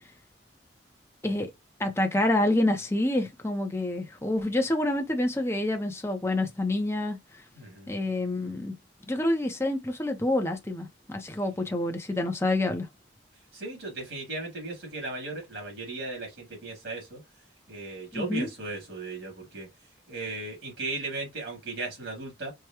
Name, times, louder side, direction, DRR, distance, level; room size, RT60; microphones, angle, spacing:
voice 1, 1.8-7.2 7.9-8.7 9.1-12.9 18.1-18.5, left 1 dB, 15° left, 0.7 m, -27 dB
voice 2, 7.5-7.9 13.5-17.2 17.7-19.7 20.1-22.5, right 3 dB, 70° right, 2.3 m, -36 dB
4.7 x 2.2 x 2.9 m
head